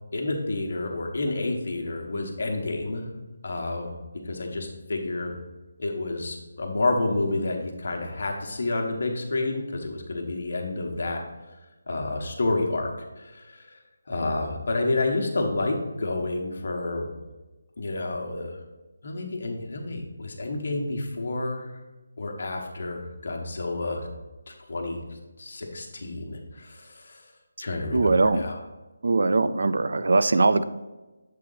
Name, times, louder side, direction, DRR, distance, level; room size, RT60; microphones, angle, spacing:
voice 1, 0.1-3.1 3.4-3.9 4.3-5.3 5.8-11.2 11.9-12.9 13.2-13.8 14.1-17.1 17.8-18.6 19.0-21.8 22.2-24.1 24.5-25.0 25.4-27.2 27.6-28.6, left 2 dB, 50° left, 1 dB, 1.1 m, -29 dB
voice 2, 27.9-28.4 29.0-30.6, right 3 dB, 60° right, 13 dB, 0.3 m, -21 dB
7.4 x 3.7 x 4.0 m, 1.1 s
figure-of-eight pair, 175°, 0 cm